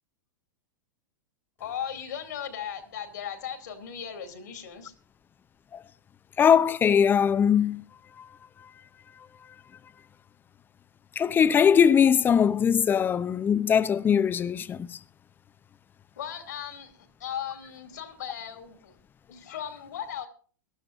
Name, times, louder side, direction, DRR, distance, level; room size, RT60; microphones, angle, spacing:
voice 1, 1.6-4.9 16.2-19.0 19.3-20.3, left 9 dB, 65° left, 2.4 m, -37 dB
voice 2, 6.4-7.8 11.2-15.0, left 7 dB, 20° left, 0.6 m, -21 dB
22.5 x 12.5 x 2.5 m
figure-of-eight pair, 95°, 10 cm